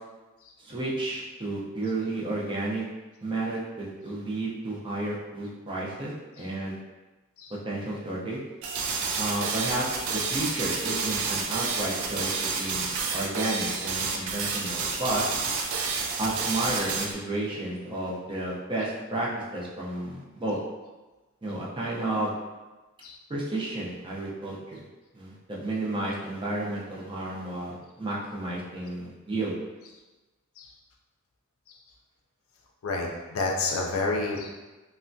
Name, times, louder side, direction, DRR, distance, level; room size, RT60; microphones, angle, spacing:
voice 1, 0.6-2.8 3.2-6.8 7.5-8.4 9.2-12.3 12.6-15.2 16.2-20.6 21.4-22.3 23.3-24.8 25.1-29.5, right 2 dB, 25° right, -5 dB, 0.5 m, -32 dB
sound 1, 8.6-17.1, right 4 dB, 75° right, 0.4 m, -30 dB
voice 2, 32.8-34.6, left 3 dB, 75° left, 0 dB, 0.5 m, -30 dB
3.3 x 2.1 x 2.5 m, 1.2 s
head